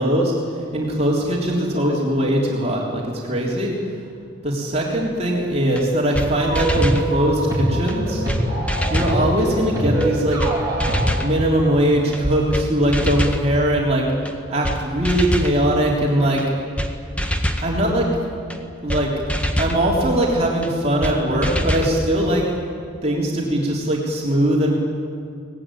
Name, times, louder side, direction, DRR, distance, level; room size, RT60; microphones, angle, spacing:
voice 1, 0.0-3.7 4.4-8.2 8.9-10.4 11.2-14.1 14.5-16.4 17.6-18.1 18.8-19.1 19.6-22.5 23.0-24.7, right 1 dB, 30° right, -3 dB, 3.5 m, -20 dB
sound 1, 5.8-5.9 6.1-6.3 6.6-7.0 7.9-8.0 8.3-8.4 8.7-9.2 10.0-10.1 10.4-10.5 10.8-11.3 12.1-12.2 12.5-12.7 12.9-13.4 14.3-14.4 14.6-14.8 15.0-15.5 16.4-16.5 16.8-16.9 17.2-17.7 18.5-18.6 18.9-19.0 19.3-19.8 20.6-20.7 21.0-21.2 21.4-21.9, equal, 5° left, 1.5 m, -24 dB
sound 2, 6.2-11.2, right 1 dB, 15° right, 7.7 m, -24 dB
23.5 x 18.5 x 10.0 m, 2.4 s
head